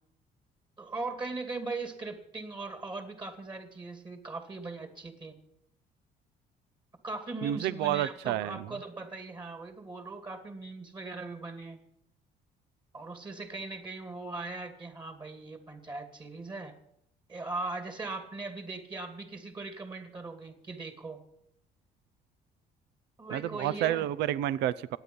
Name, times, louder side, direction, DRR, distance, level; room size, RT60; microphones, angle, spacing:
voice 1, 0.8-5.4 7.0-11.8 12.9-16.7 17.3-21.2 23.2-24.1, right 3 dB, 25° right, 6 dB, 2.5 m, -39 dB
voice 2, 7.4-8.7 23.3-25.0, right 12 dB, 85° right, 18 dB, 0.7 m, -30 dB
27.0 x 9.0 x 5.4 m, 0.77 s
cardioid pair, 110°, 17 cm